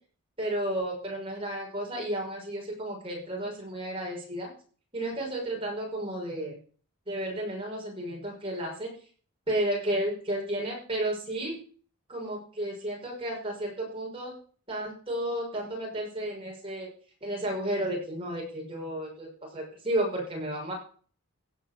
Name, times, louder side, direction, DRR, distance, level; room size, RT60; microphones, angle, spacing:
voice 1, 0.4-4.5 4.9-6.6 7.1-8.9 9.5-11.6 12.1-14.3 14.7-16.9 17.2-20.7, right 1 dB, 25° right, -1 dB, 5.9 m, -32 dB
16.0 x 5.5 x 7.1 m, 0.43 s
head